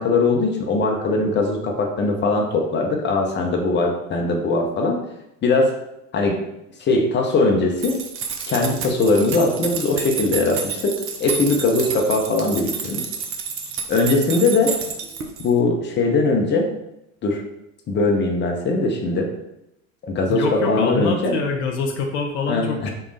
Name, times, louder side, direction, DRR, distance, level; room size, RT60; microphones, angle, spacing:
voice 1, 0.0-5.0 5.4-5.8 6.1-6.4 6.8-8.0 8.5-13.1 13.9-14.7 15.4-16.7 17.2-17.4 17.9-19.3 20.0-21.3 22.5-22.9, left 3 dB, 25° left, 2 dB, 0.8 m, -20 dB
sound 1, 7.8-15.5, right 6 dB, 35° right, 0.6 m, -30 dB
voice 2, 20.3-22.9, left 4 dB, 60° left, 3 dB, 0.7 m, -25 dB
4.4 x 2.4 x 3.2 m, 0.86 s
figure-of-eight pair, 70°, 39 cm